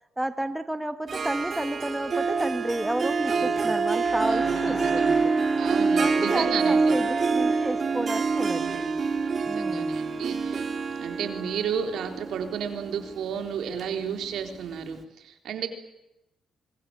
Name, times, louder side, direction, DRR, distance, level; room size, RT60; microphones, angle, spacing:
voice 1, 0.2-5.3 6.0-8.9 9.5-9.9, right 1 dB, 5° right, 10 dB, 1.5 m, -31 dB
Harp, 1.1-14.6, right 4 dB, 45° right, 3.0 m, -26 dB
voice 2, 3.3-3.7 4.3-5.1 5.6-6.8 8.5-8.9 9.4-10.6 11.0-15.7, right 7 dB, 80° right, 6 dB, 3.8 m, -33 dB
sound 1, 4.0-8.9, left 2 dB, 15° left, 1.8 m, -43 dB
24.5 x 22.0 x 8.9 m, 0.90 s
cardioid pair, 110°, 0 cm